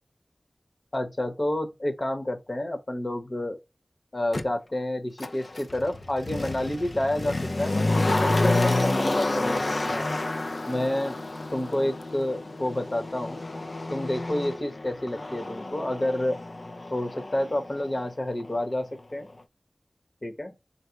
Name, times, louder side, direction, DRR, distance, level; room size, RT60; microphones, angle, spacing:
voice 1, 0.9-3.6 4.1-10.1 10.7-11.2 11.5-13.4 13.9-16.4 16.9-19.3 20.2-20.5, left 1 dB, 45° left, 1.0 m, -29 dB
Motor vehicle (road), 4.3-4.4 5.2-18.1 18.4-18.5, left 2 dB, 65° left, 0.4 m, -29 dB
4.0 x 2.1 x 4.4 m
wide cardioid pair, 50°, 0 cm